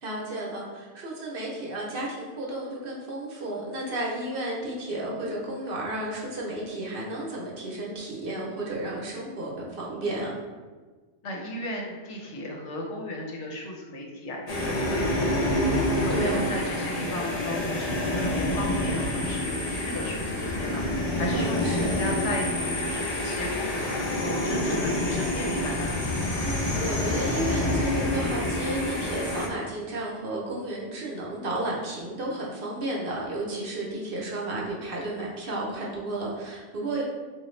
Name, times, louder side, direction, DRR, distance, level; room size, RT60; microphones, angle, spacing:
voice 1, 0.0-10.3 16.1-16.4 21.3-22.0 26.4-37.0, right 1 dB, 55° right, -3 dB, 0.8 m, -33 dB
voice 2, 11.2-15.1 15.4-25.9, left 1 dB, 80° left, 0 dB, 1.0 m, -35 dB
sound 1, 14.5-29.5, left 1 dB, 45° left, 0.5 m, -27 dB
3.9 x 2.4 x 3.1 m, 1.4 s
omnidirectional pair, 1.2 m